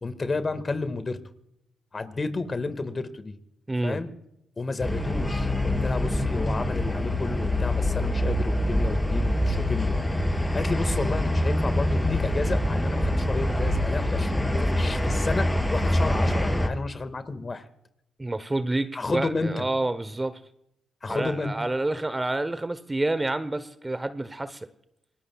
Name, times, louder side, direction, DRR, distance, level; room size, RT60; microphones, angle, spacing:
voice 1, 0.0-1.2 1.9-3.3 3.8-4.1 4.6-10.0 10.3-17.7 18.9-19.7 21.0-21.5, left 3 dB, 35° left, 11 dB, 1.9 m, -31 dB
voice 2, 3.7-4.0 18.2-20.4 21.1-24.7, right 2 dB, 20° right, 13 dB, 1.1 m, -28 dB
sound 1, 4.8-16.7, left 1 dB, 10° left, 3.4 m, -25 dB
27.5 x 19.5 x 2.4 m, 0.78 s
hypercardioid pair, 40°, 0 cm